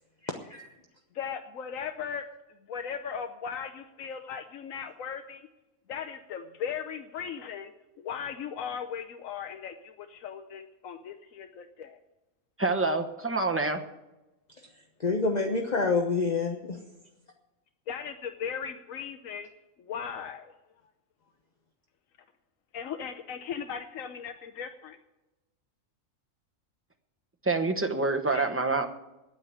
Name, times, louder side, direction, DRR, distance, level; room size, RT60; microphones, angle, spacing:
voice 1, 0.2-0.7 15.0-16.8, left 4 dB, 35° left, 3 dB, 1.1 m, -27 dB
voice 2, 1.1-2.2 2.6-5.5 5.9-12.0 17.9-19.5 19.8-20.5 22.7-25.0 28.3-28.5, left 7 dB, 90° left, 7 dB, 1.2 m, -38 dB
voice 3, 12.6-13.8 27.4-28.9, right 3 dB, 10° right, 5 dB, 1.0 m, -27 dB
9.9 x 9.3 x 9.7 m, 1.0 s
omnidirectional pair, 1.4 m